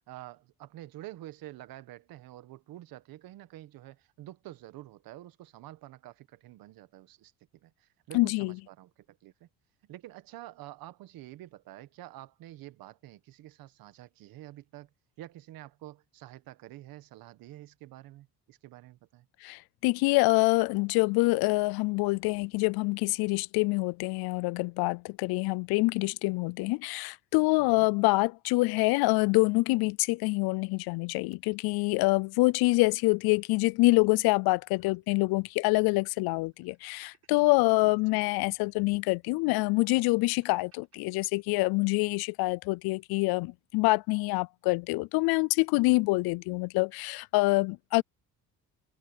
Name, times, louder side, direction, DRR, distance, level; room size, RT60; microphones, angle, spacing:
voice 1, 0.1-7.3 7.6-9.5 9.9-14.9 15.2-19.3 27.6-27.9 38.1-38.2, right 15 dB, 70° right, 1.4 m, -48 dB
voice 2, 8.1-8.6 19.4-48.0, left 24 dB, 80° left, 0.5 m, -26 dB
sound 1, 31.3-33.0 33.4-33.5 33.8-35.6 35.8-35.9 36.4-38.0 38.7-41.0, right 8 dB, 40° right, 5.6 m, -70 dB
cardioid pair, 140°, 37 cm